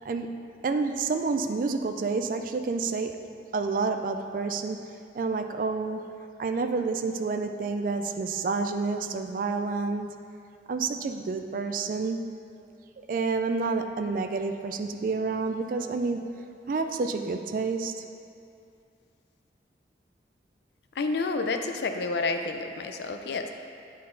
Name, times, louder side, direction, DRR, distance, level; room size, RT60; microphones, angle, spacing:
voice 1, 0.0-4.8 5.1-6.0 6.4-10.1 10.7-12.2 13.1-16.3 16.7-17.9, right 4 dB, 45° right, 7 dB, 0.3 m, -29 dB
voice 2, 21.0-23.5, left 3 dB, 65° left, 5 dB, 0.4 m, -29 dB
8.5 x 3.9 x 3.8 m, 2.5 s
head